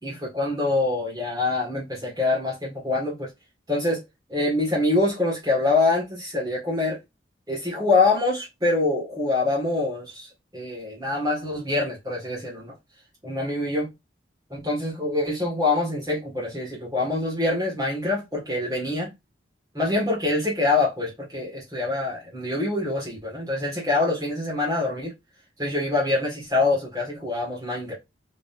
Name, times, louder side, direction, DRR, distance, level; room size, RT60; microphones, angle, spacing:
voice 1, 0.0-3.3 3.7-4.0 4.3-7.0 7.5-12.7 13.2-13.9 14.5-19.1 19.7-25.1 25.6-27.9, left 2 dB, 20° right, 1.8 m, -25 dB
3.8 x 3.8 x 2.5 m
head